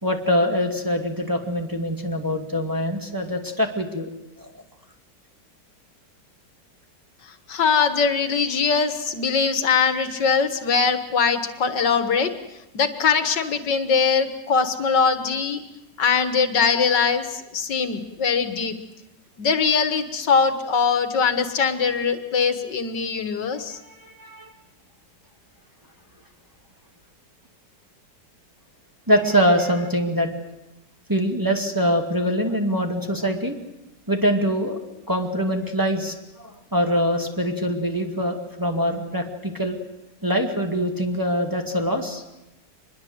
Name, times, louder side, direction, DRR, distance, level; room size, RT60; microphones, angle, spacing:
voice 1, 0.0-4.1 4.4-4.5 23.9-24.5 29.1-30.3 31.1-33.6 34.1-34.8 35.1-39.8 40.2-42.2, equal, 10° right, 2 dB, 2.3 m, -23 dB
voice 2, 7.2-12.3 12.7-15.6 16.0-18.8 19.4-23.8, left 5 dB, 75° left, 9 dB, 2.2 m, -22 dB
25.5 x 21.0 x 8.0 m, 0.92 s
omnidirectional pair, 1.9 m